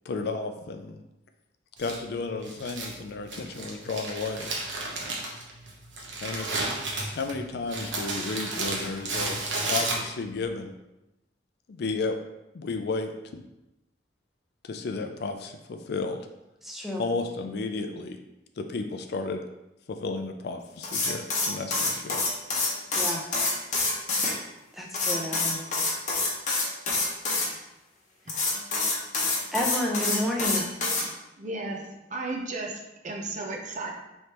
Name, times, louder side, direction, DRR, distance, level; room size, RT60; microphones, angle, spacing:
voice 1, 0.1-1.0 1.8-4.5 6.2-6.5 7.1-9.4 9.6-10.7 11.7-12.2 12.5-13.1 14.6-16.2 17.0-18.2 18.6-19.4 19.9-22.2, left 3 dB, 60° left, 5 dB, 0.4 m, -33 dB
Crumpling crinkling, 1.8-10.4, right 2 dB, 75° right, 0.9 m, -33 dB
voice 2, 16.6-17.0 23.0-23.2 24.7-25.6 29.5-30.6, left 1 dB, ahead, -2 dB, 0.6 m, -30 dB
sound 1, 20.8-24.3 24.9-27.5 28.3-31.0, left 3 dB, 40° left, 0.9 m, -27 dB
voice 3, 31.4-31.8 32.1-33.9, right 2 dB, 40° right, 1 dB, 0.6 m, -34 dB
4.9 x 3.2 x 2.9 m, 0.94 s
head